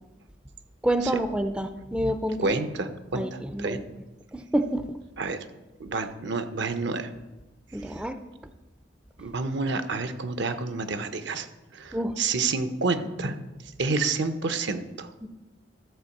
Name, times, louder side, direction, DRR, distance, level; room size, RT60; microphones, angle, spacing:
voice 1, 0.8-2.4 3.1-3.8 4.3-4.8 7.7-8.2 11.9-12.1 15.2-15.3, right 1 dB, 5° right, 8 dB, 0.4 m, -27 dB
voice 2, 2.4-3.8 5.2-5.4 5.8-7.1 7.9-8.0 9.2-11.5 11.7-13.4 13.8-15.1, right 3 dB, 65° right, 10 dB, 0.8 m, -29 dB
12.5 x 4.6 x 7.1 m, 1.1 s
head